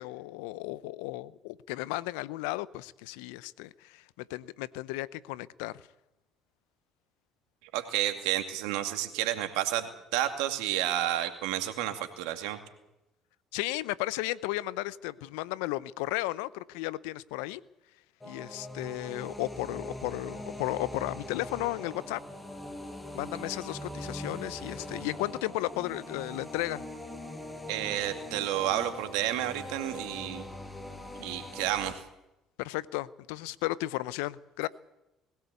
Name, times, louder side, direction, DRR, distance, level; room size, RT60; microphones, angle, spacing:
voice 1, 0.0-5.8 13.5-17.6 18.2-22.2 23.1-26.9 32.6-34.7, left 18 dB, 80° left, 19 dB, 0.6 m, -34 dB
voice 2, 7.7-12.6 27.7-30.5 31.2-32.0, right 13 dB, 80° right, 7 dB, 2.3 m, -31 dB
sound 1, 18.2-31.9, left 1 dB, 20° left, 5.2 m, -42 dB
21.0 x 17.0 x 8.3 m, 0.92 s
hypercardioid pair, 65°, 0 cm